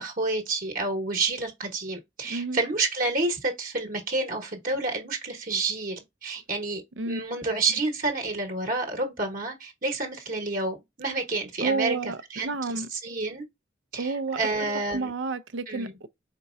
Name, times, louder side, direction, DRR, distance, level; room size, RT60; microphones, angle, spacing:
voice 1, 0.0-12.0 12.3-13.4 13.9-15.1 15.7-15.9, right 3 dB, 50° right, 1.1 m, -29 dB
voice 2, 2.3-2.6 7.0-7.2 11.6-12.9 14.0-14.4 14.9-16.1, right 3 dB, 85° right, 0.6 m, -30 dB
4.5 x 4.0 x 2.4 m
head